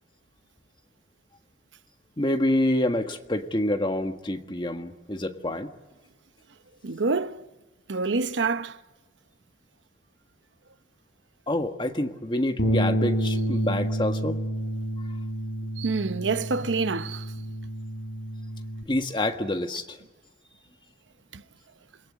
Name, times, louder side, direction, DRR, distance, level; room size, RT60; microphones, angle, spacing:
voice 1, 2.2-5.7 11.5-14.4 18.9-20.0, left 1 dB, 25° left, 1.6 m, -27 dB
voice 2, 6.8-7.4 7.9-8.8 15.8-17.3 21.3-21.4, right 4 dB, 90° right, 0.9 m, -27 dB
Bass guitar, 12.6-18.8, right 1 dB, 70° left, 7.4 m, -29 dB
27.5 x 22.0 x 9.8 m
head